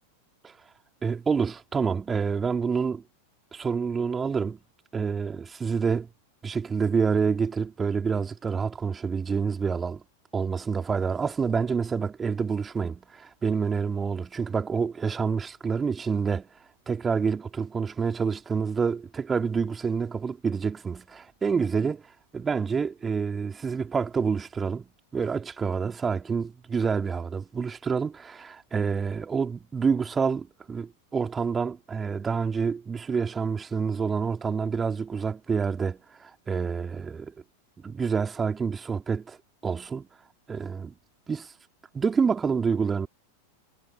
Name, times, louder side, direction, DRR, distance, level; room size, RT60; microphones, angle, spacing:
voice 1, 1.0-3.0 3.5-4.6 4.9-6.1 6.4-10.0 10.3-16.5 16.9-22.1 22.3-37.3 37.8-39.4 39.6-40.1 40.5-40.9 41.3-41.5 41.9-43.1, right 5 dB, 15° right, 4.0 m, -28 dB
figure-of-eight pair, 90°, 0 cm